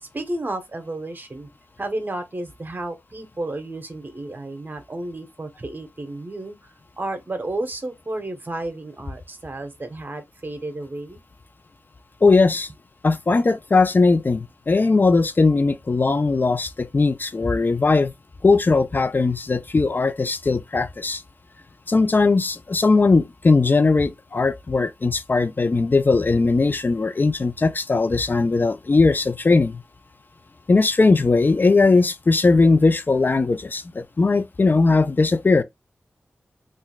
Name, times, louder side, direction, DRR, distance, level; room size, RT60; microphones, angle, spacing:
voice 1, 0.0-1.5 1.8-6.6 7.0-11.2, right 2 dB, 40° right, 1.0 m, -32 dB
voice 2, 12.2-12.7 13.0-18.1 18.4-21.2 21.9-29.8 30.7-35.6, left 3 dB, 40° left, 0.4 m, -19 dB
3.7 x 2.6 x 2.3 m
cardioid pair, 45°, 5 cm